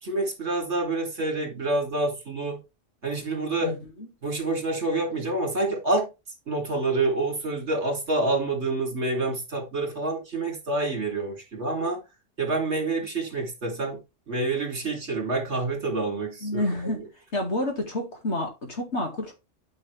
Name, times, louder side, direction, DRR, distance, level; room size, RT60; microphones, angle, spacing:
voice 1, 0.0-2.6 3.0-3.7 4.2-6.1 6.5-12.0 12.4-14.0 14.3-17.0, right 2 dB, 60° right, 3.0 m, -27 dB
voice 2, 3.6-4.1 16.4-17.1 17.3-19.3, left 1 dB, 60° left, 2.4 m, -29 dB
9.5 x 5.5 x 3.4 m
omnidirectional pair, 1.3 m